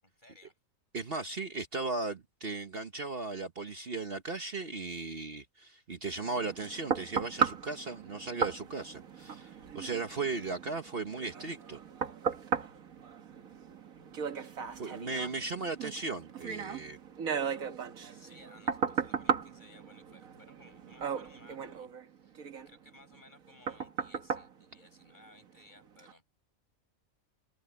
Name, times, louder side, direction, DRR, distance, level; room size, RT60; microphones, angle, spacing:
voice 1, 0.0-0.6 14.6-15.5 18.1-22.4 22.7-26.2, left 1 dB, 35° left, 7.2 m, -59 dB
voice 2, 0.9-11.8 14.4-14.5 14.8-17.0, right 3 dB, 45° right, 1.4 m, -37 dB
sound 1, 6.2-25.5 26.0-26.1, right 6 dB, 85° right, 1.8 m, -37 dB
omnidirectional pair, 1.4 m